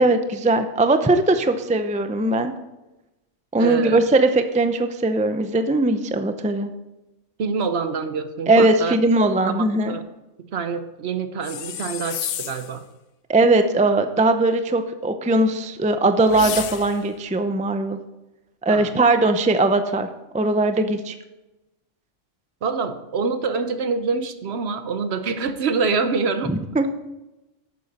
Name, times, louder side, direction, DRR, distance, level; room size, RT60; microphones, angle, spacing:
voice 1, 0.0-2.5 3.5-6.7 8.5-10.0 13.3-18.0 18.6-20.1 20.3-21.1 26.5-26.9, right 2 dB, 10° right, 8 dB, 0.4 m, -20 dB
voice 2, 3.6-4.0 7.4-8.9 9.4-10.0 10.4-12.8 18.7-18.9 22.6-26.6, right 5 dB, 60° right, 10 dB, 1.0 m, -26 dB
sound 1, 11.4-12.8 16.3-17.1, left 9 dB, 60° left, 0.7 m, -31 dB
11.5 x 8.4 x 4.2 m, 1.0 s
omnidirectional pair, 1.2 m